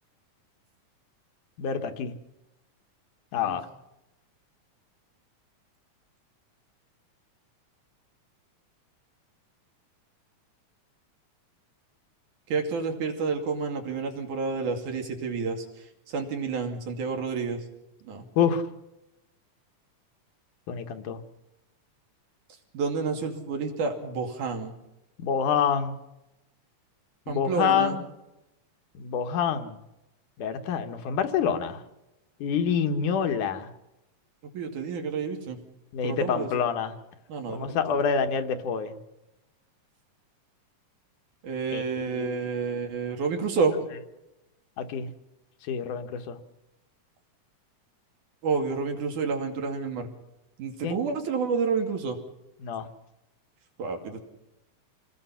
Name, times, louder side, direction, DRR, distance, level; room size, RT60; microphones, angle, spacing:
voice 1, 1.6-2.1 3.3-3.7 18.4-18.6 20.7-21.2 25.2-26.0 27.3-28.0 28.9-29.8 30.4-31.8 32.4-33.7 35.9-36.9 37.5-39.0 41.7-42.5 44.8-45.1 45.7-46.4 50.8-51.0 52.6-52.9, left 7 dB, 85° left, 7 dB, 2.9 m, -27 dB
voice 2, 12.5-17.6 18.0-18.3 22.7-24.7 27.3-28.0 34.5-35.6 36.0-36.6 37.3-37.8 41.4-43.8 48.4-50.1 50.6-52.2 53.8-54.2, right 5 dB, 85° right, 4 dB, 4.0 m, -29 dB
27.5 x 19.5 x 5.8 m, 0.93 s
omnidirectional pair, 3.5 m